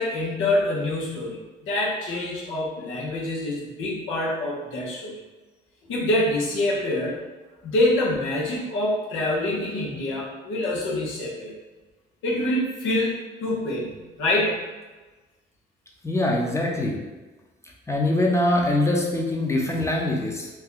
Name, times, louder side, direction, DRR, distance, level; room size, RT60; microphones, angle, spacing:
voice 1, 0.0-5.1 5.9-7.2 7.6-11.5 12.2-14.6, left 1 dB, 85° left, -4 dB, 1.0 m, -26 dB
voice 2, 16.0-17.0 17.9-20.5, left 1 dB, 15° left, -1 dB, 0.7 m, -23 dB
2.9 x 2.3 x 3.8 m, 1.2 s
cardioid pair, 90°, 20 cm